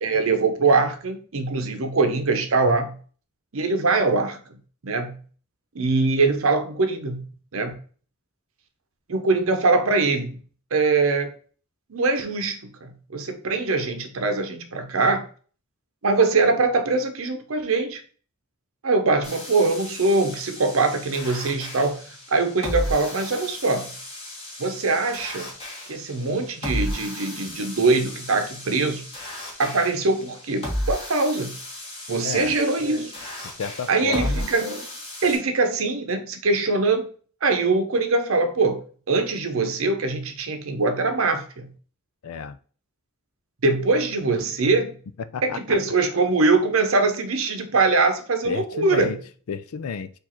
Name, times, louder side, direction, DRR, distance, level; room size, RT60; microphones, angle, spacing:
voice 1, 0.0-3.0 3.5-4.4 4.8-5.2 5.7-7.8 9.1-10.4 10.7-11.3 11.9-15.3 16.0-18.0 18.8-22.0 22.3-23.9 24.6-25.5 25.9-29.0 29.6-31.5 32.1-33.1 33.9-34.9 35.2-37.1 37.4-38.8 39.1-41.7 43.6-44.9 45.4-49.2, right 3 dB, 70° right, 0.7 m, -22 dB
sound 1, 19.2-35.4, left 1 dB, 30° left, 1.7 m, -34 dB
voice 2, 32.2-32.6 33.4-34.5 42.2-42.6 45.3-45.8 48.4-49.2 49.5-50.1, left 5 dB, 85° left, 0.4 m, -31 dB
4.7 x 2.5 x 4.2 m
head